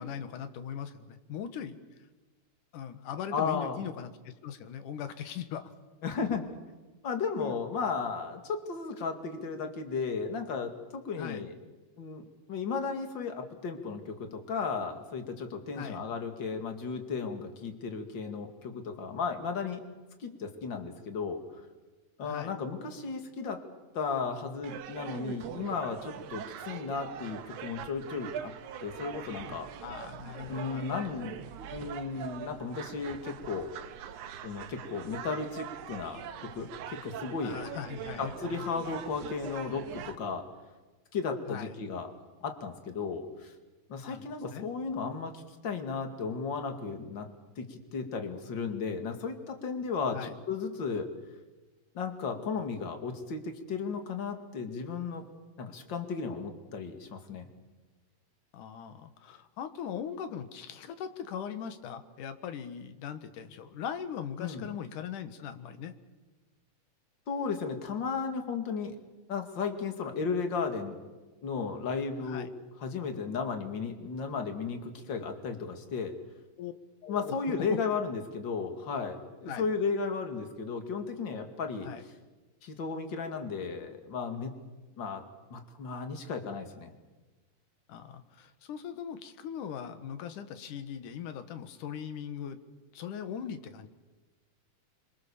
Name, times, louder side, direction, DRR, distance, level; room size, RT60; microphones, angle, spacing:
voice 1, 0.0-1.8 2.7-5.7 7.4-7.5 11.2-11.5 15.7-16.0 22.2-22.5 29.8-31.2 37.4-38.7 41.5-41.8 44.0-44.7 50.1-50.4 58.5-66.0 72.2-72.5 76.6-76.7 77.0-77.4 77.7-77.8 79.5-79.7 81.8-82.0 87.9-92.6 92.9-93.9, left 8 dB, 70° left, 10 dB, 2.9 m, -40 dB
voice 2, 3.3-3.8 6.0-6.5 7.0-11.5 12.0-19.9 20.2-21.4 22.2-23.6 23.9-28.5 28.8-29.7 30.5-31.4 31.7-33.7 34.4-37.6 38.2-40.4 41.1-42.1 42.4-43.5 43.9-47.3 47.6-51.1 51.9-55.2 55.6-57.5 64.4-64.6 67.3-69.0 69.3-71.0 71.4-72.5 72.8-76.2 77.1-81.9 82.6-84.5 85.0-85.2 85.5-86.9, left 5 dB, 35° left, 6 dB, 2.5 m, -34 dB
sound 1, 24.6-40.2, right 9 dB, 70° right, 2.4 m, -43 dB
26.5 x 25.0 x 7.1 m, 1.2 s
omnidirectional pair, 3.9 m